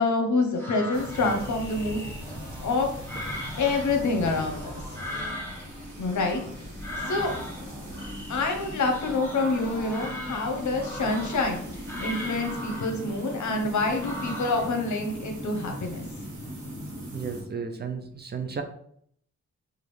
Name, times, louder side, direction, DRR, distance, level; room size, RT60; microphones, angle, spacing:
voice 1, 0.0-2.0 2.6-2.9 3.6-4.7 6.0-6.4 7.1-7.3 8.3-16.0, left 3 dB, 75° left, 4 dB, 0.9 m, -27 dB
sound 1, 0.6-14.8, left 1 dB, 10° left, 1.1 m, -39 dB
sound 2, 0.9-17.4, equal, 85° right, 1.4 m, -39 dB
voice 2, 17.1-18.6, right 5 dB, 35° right, 5 dB, 0.5 m, -33 dB
5.0 x 2.4 x 3.2 m, 0.67 s
wide cardioid pair, 135°, 29 cm